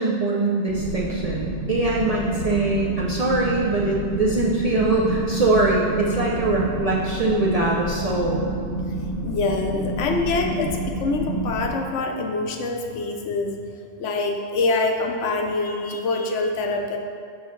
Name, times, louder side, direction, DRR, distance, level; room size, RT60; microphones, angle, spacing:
voice 1, 0.0-8.5, right 2 dB, 50° right, -4 dB, 0.4 m, -22 dB
sound 1, 0.7-11.7, right 1 dB, 55° left, 1.5 m, -29 dB
voice 2, 9.2-13.5 14.0-17.0, left 3 dB, 80° left, 3 dB, 1.0 m, -25 dB
6.1 x 5.8 x 3.1 m, 2.4 s
omnidirectional pair, 1.2 m